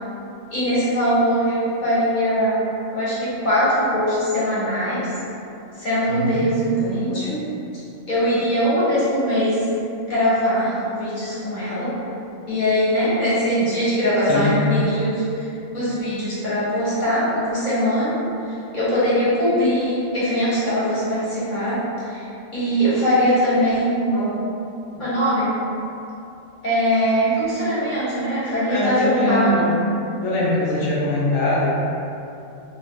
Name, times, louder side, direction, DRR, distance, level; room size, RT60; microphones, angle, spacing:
voice 1, 0.5-2.6 2.9-5.1 5.8-7.3 8.1-9.7 10.1-11.9 12.5-18.2 18.4-24.3 25.0-25.5 26.6-29.6, equal, 35° left, -11 dB, 1.3 m, -21 dB
voice 2, 6.1-6.4 14.3-14.5 28.7-29.8 30.2-31.7, left 1 dB, 70° left, -7 dB, 1.2 m, -22 dB
2.7 x 2.7 x 3.7 m, 2.7 s
omnidirectional pair, 1.4 m